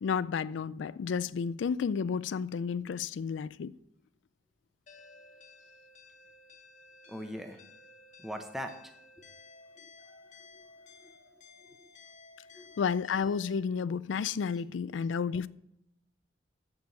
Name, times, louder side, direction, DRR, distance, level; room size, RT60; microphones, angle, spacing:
voice 1, 0.0-3.7 12.8-15.5, left 6 dB, 85° left, 0.4 m, -31 dB
sound 1, 4.9-13.6, left 3 dB, 40° left, 1.2 m, -55 dB
voice 2, 7.1-7.6 8.2-8.8 9.8-9.9 10.5-10.6 11.0-11.1 11.8-11.9 12.5-12.9, equal, ahead, 0.8 m, -41 dB
8.0 x 6.9 x 6.9 m
head